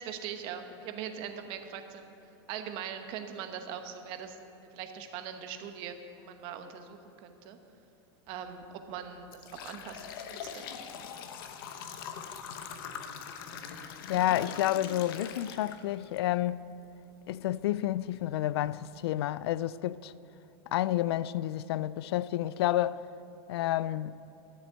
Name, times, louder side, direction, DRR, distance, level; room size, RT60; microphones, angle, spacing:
voice 1, 0.0-2.1 2.5-4.4 4.7-7.6 8.3-10.6 11.2-11.3, right 8 dB, 40° right, 1.1 m, -41 dB
sound 1, 8.4-8.5 9.0-16.2 16.6-16.7 17.6-17.7 18.2-18.3 18.7-19.0, left 7 dB, 60° left, 1.0 m, -42 dB
voice 2, 14.1-16.6 17.3-20.1 20.7-23.0 23.5-24.2, left 13 dB, 80° left, 0.4 m, -30 dB
13.0 x 7.6 x 8.0 m
supercardioid pair, 155°, 13 cm